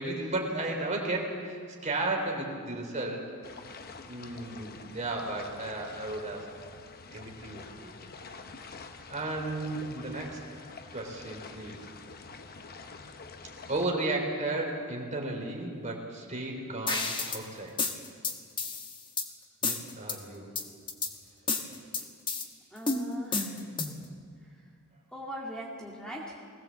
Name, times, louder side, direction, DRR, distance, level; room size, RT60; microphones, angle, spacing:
voice 1, 0.0-3.2 4.1-6.5 7.1-7.9 9.1-10.4 10.9-11.8 13.7-17.7 19.6-20.5, right 2 dB, 35° right, 1 dB, 3.6 m, -34 dB
sound 1, 3.4-13.9, left 4 dB, 45° left, 1.0 m, -47 dB
sound 2, 16.9-17.4 17.8-19.3 19.6-20.2 20.6-21.1 21.5-22.5 22.9-24.1, left 4 dB, 20° left, 1.4 m, -31 dB
voice 2, 21.7-22.1 22.7-23.6 24.4-24.5 25.1-26.5, equal, 5° left, -3 dB, 2.2 m, -42 dB
20.0 x 18.0 x 7.5 m, 2.1 s
head